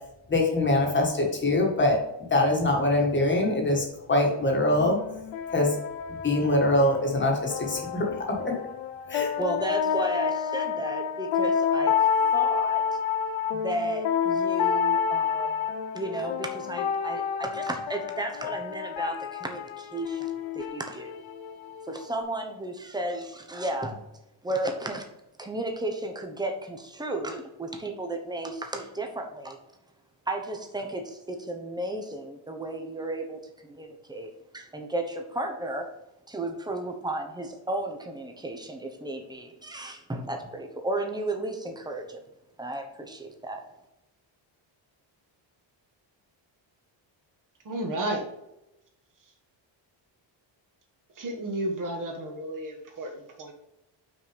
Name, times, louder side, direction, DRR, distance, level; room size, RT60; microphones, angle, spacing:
voice 1, 0.3-2.0 2.3-5.0 5.5-5.7 6.2-8.1 8.4-8.6 9.1-9.3, left 1 dB, 25° left, 0 dB, 1.6 m, -23 dB
sound 1, 4.8-22.2, left 7 dB, 75° left, 0.7 m, -29 dB
voice 2, 9.4-12.0 12.3-12.8 13.5-21.2 21.9-24.0 24.4-25.1 25.4-29.6 30.3-35.9 36.3-42.2 42.6-43.6, right 1 dB, 10° right, 3 dB, 0.9 m, -33 dB
voice 3, 47.6-48.2 51.2-53.5, right 1 dB, 40° right, 3 dB, 1.5 m, -32 dB
5.9 x 4.6 x 5.1 m, 0.89 s
cardioid pair, 180°, 48 cm